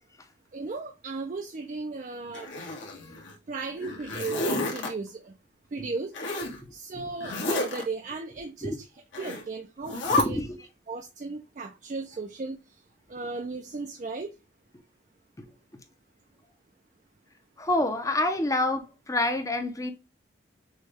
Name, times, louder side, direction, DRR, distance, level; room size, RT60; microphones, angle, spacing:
voice 1, 0.5-2.5 3.5-5.3 5.7-6.1 6.7-8.7 9.2-10.4 10.9-12.6 13.1-14.3, right 3 dB, 40° right, 0.4 m, -36 dB
Zipper (clothing), 2.3-3.3 3.8-4.9 6.1-6.6 7.2-7.8 9.1-9.4 9.8-10.2, left 2 dB, 80° left, 1.6 m, -30 dB
voice 2, 6.6-7.1 8.6-8.8 10.0-10.7 15.4-15.8 17.6-19.9, left 1 dB, 15° left, 0.6 m, -29 dB
6.2 x 2.2 x 3.3 m
head